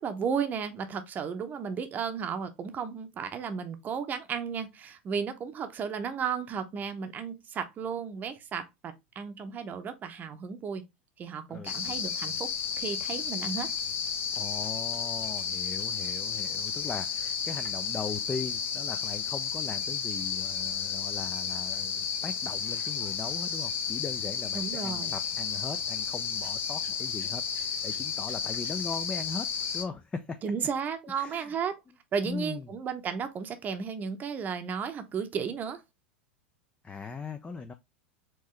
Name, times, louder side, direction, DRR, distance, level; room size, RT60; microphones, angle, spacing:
voice 1, 0.0-10.8 11.2-12.5 12.8-13.7 24.5-25.1 30.4-31.8 32.1-35.8, right 6 dB, 30° right, 0.8 m, -34 dB
voice 2, 11.5-12.0 14.3-29.5 29.7-30.4 31.1-31.5 32.2-32.7 36.8-37.7, left 4 dB, 15° left, 0.5 m, -39 dB
sound 1, 11.7-29.8, left 7 dB, 40° left, 0.9 m, -32 dB
4.5 x 2.9 x 3.1 m
hypercardioid pair, 90°, 6 cm